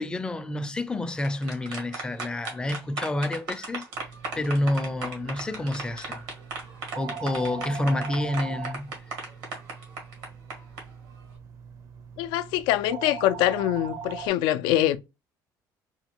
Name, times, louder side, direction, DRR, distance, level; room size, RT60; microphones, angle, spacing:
voice 1, 0.0-3.8 4.4-6.2 6.9-8.9, left 1 dB, 10° left, 0.4 m, -28 dB
sound 1, 1.1-10.8, right 3 dB, 90° right, 1.6 m, -36 dB
sound 2, 3.9-14.3, right 7 dB, 50° right, 0.6 m, -41 dB
voice 2, 12.2-15.0, left 13 dB, 90° left, 0.4 m, -24 dB
4.3 x 2.3 x 2.9 m
cardioid pair, 130°, 7 cm